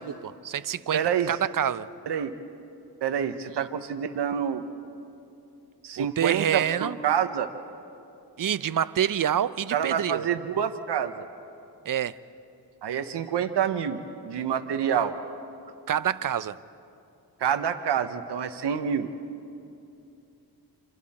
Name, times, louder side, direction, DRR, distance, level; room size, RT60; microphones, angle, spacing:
voice 1, 0.1-1.0 1.3-1.9 6.0-7.0 8.4-10.3 11.9-12.1 15.9-16.6, right 9 dB, 50° right, 15 dB, 0.7 m, -27 dB
voice 2, 0.9-1.3 2.1-2.3 3.0-4.6 5.8-6.6 7.0-7.5 9.7-11.3 12.8-15.2 17.4-19.1, right 8 dB, 75° right, 7 dB, 1.1 m, -27 dB
27.5 x 27.0 x 4.3 m, 2.7 s
cardioid pair, 80°, 41 cm